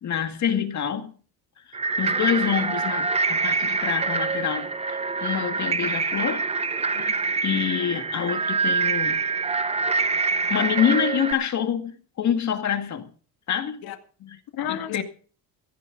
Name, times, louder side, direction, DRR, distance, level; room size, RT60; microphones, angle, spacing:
voice 1, 0.0-1.1 1.6-6.4 6.8-9.2 10.5-13.1 13.5-13.8 14.7-15.0, left 8 dB, 45° left, 1.9 m, -27 dB
sound 1, 1.7-11.3, right 4 dB, 15° right, 0.6 m, -25 dB
voice 2, 9.8-10.4 14.2-15.0, left 10 dB, 65° left, 2.2 m, -34 dB
17.5 x 14.5 x 3.8 m
cardioid pair, 125°, 39 cm